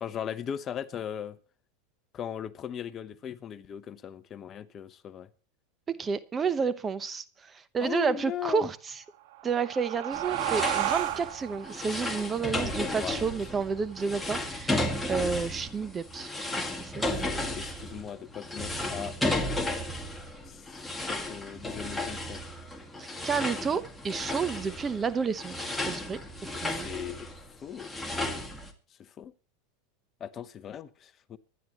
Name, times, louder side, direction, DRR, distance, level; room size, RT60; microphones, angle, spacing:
voice 1, 0.0-1.4 2.1-5.3 7.8-8.7 12.4-13.2 17.0-19.9 20.5-20.7 21.0-22.4 26.5-27.3 27.6-27.9 29.0-29.3 30.2-31.4, left 9 dB, 30° left, 0.9 m, -38 dB
voice 2, 5.9-8.8 9.4-17.3 23.0-26.9, right 5 dB, 20° right, 1.0 m, -31 dB
sound 1, 9.2-14.4, right 13 dB, 70° right, 1.6 m, -34 dB
sound 2, 10.1-28.7, left 1 dB, 5° left, 2.1 m, -34 dB
25.0 x 11.0 x 3.0 m
supercardioid pair, 125°, 0 cm